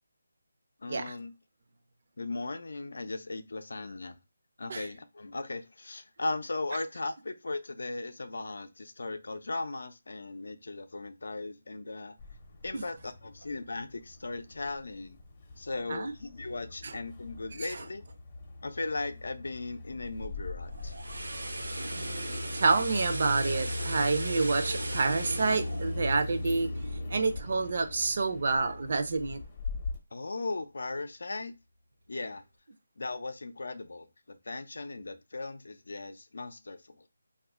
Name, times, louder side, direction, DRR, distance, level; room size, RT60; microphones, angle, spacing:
voice 1, 0.8-1.3 2.2-4.2 4.6-12.2 12.6-15.2 15.6-18.0 18.6-20.9 30.1-31.5 32.1-32.4 33.0-37.0, left 3 dB, 70° left, 0.5 m, -37 dB
sound 1, 12.2-30.0, left 2 dB, 25° left, 0.6 m, -40 dB
sound 2, 20.6-26.8 27.2-27.4, right 2 dB, 80° right, 0.8 m, -39 dB
voice 2, 21.9-26.7 27.1-29.4, right 4 dB, 50° right, 0.5 m, -28 dB
2.9 x 2.4 x 3.5 m
figure-of-eight pair, 165°, 0 cm